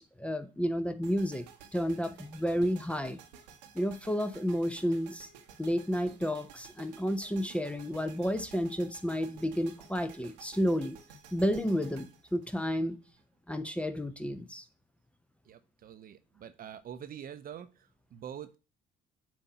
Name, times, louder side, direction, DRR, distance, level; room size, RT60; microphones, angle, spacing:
voice 1, 0.2-1.5 1.7-3.2 3.7-5.3 5.6-11.0 11.3-13.0 13.5-14.6, equal, 5° left, 0.6 m, -31 dB
sound 1, 1.0-13.2, right 7 dB, 80° right, 0.9 m, -54 dB
voice 2, 15.4-18.6, right 9 dB, 45° right, 0.7 m, -45 dB
7.2 x 2.7 x 5.5 m
hypercardioid pair, 55°, 21 cm